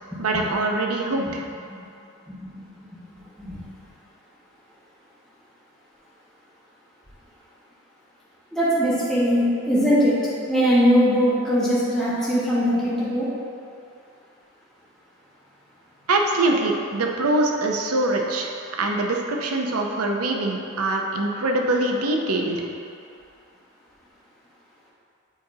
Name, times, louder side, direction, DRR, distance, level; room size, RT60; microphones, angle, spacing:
voice 1, 0.2-1.5 16.1-18.5 18.8-22.6, right 2 dB, 90° right, 1 dB, 0.6 m, -23 dB
voice 2, 8.5-10.2 10.5-13.3, equal, ahead, -11 dB, 1.0 m, -20 dB
7.5 x 2.8 x 4.7 m, 2.5 s
head